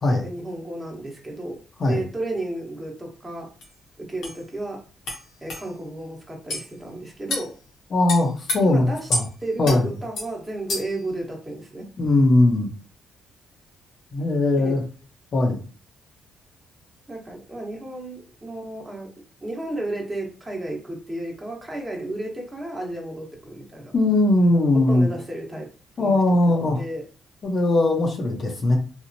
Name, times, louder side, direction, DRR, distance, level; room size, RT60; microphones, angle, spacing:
voice 1, 0.2-3.5 4.0-4.8 5.4-7.5 8.6-9.1 9.4-11.9 14.6-14.8 17.1-19.1 19.4-23.9 24.7-25.7 26.0-27.1, right 2 dB, 20° right, 0 dB, 1.0 m, -33 dB
sound 1, 3.6-3.7 4.2-4.4 5.1-5.2 5.5-5.6 6.5-6.7 7.3-7.5 8.1-8.6 9.1-9.3 9.6-9.8 10.2-10.3 10.7-11.0, left 1 dB, 75° left, 0.9 m, -28 dB
voice 2, 7.9-9.2 9.6-9.9 12.0-12.7 14.1-14.8 15.3-15.6 23.9-25.1 26.0-26.8 27.4-28.8, left 2 dB, 50° left, 1 dB, 0.6 m, -19 dB
2.9 x 2.0 x 2.6 m, 0.37 s
cardioid pair, 90°, 0 cm